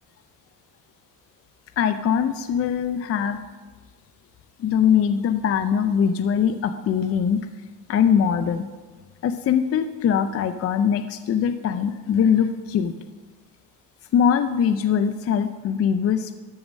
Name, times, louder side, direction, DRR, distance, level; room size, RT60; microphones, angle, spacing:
voice 1, 1.8-3.4 4.6-7.5 7.9-8.6 9.2-12.9 14.1-16.4, left 8 dB, 40° left, 9 dB, 0.5 m, -22 dB
12.5 x 4.8 x 6.2 m, 1.3 s
cardioid pair, 120°, 38 cm